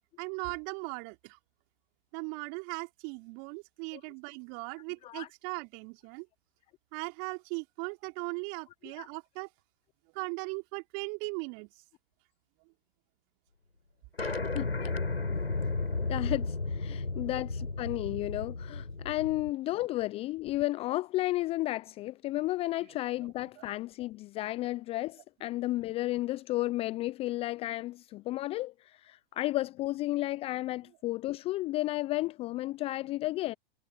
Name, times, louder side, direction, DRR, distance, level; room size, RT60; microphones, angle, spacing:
voice 1, 0.2-1.4 2.1-6.3 6.9-9.5 10.1-11.7 15.2-15.3 16.9-17.3 22.8-23.6, right 38 dB, 40° right, 4.2 m, -39 dB
sound 1, 14.2-19.5, left 3 dB, 90° left, 7.7 m, -33 dB
voice 2, 16.1-33.5, left 17 dB, 20° left, 0.5 m, -33 dB
figure-of-eight pair, 115°, 30 cm